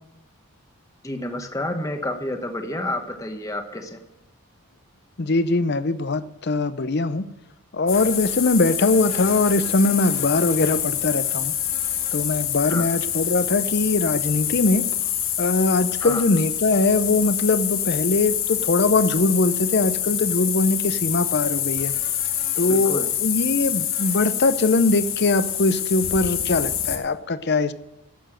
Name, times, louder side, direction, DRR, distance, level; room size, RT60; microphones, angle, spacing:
voice 1, 1.0-4.0 12.7-12.9 16.0-16.2 22.7-23.1, left 1 dB, 15° left, 6 dB, 1.1 m, -29 dB
voice 2, 5.2-7.3 7.7-11.5 12.1-14.9 15.4-21.9 22.6-27.7, left 3 dB, 50° left, 14 dB, 0.6 m, -21 dB
sound 1, 7.9-27.0, left 10 dB, 65° left, 1.6 m, -26 dB
11.5 x 7.9 x 7.7 m, 0.95 s
head